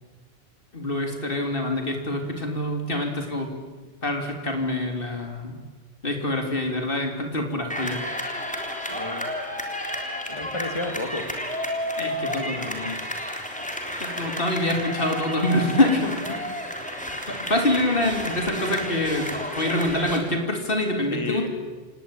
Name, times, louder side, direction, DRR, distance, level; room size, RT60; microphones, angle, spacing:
voice 1, 0.7-3.5 4.0-5.6 6.0-8.0 12.0-13.0 14.0-16.5 17.3-19.3 19.5-21.5, left 1 dB, 60° left, 4 dB, 3.6 m, -25 dB
sound 1, 7.7-20.2, equal, 5° left, 3.7 m, -31 dB
voice 2, 8.9-9.3 9.9-10.0 10.3-11.3 21.1-21.5, left 2 dB, 30° left, 5 dB, 2.6 m, -31 dB
28.0 x 19.5 x 9.1 m, 1.3 s
omnidirectional pair, 1.1 m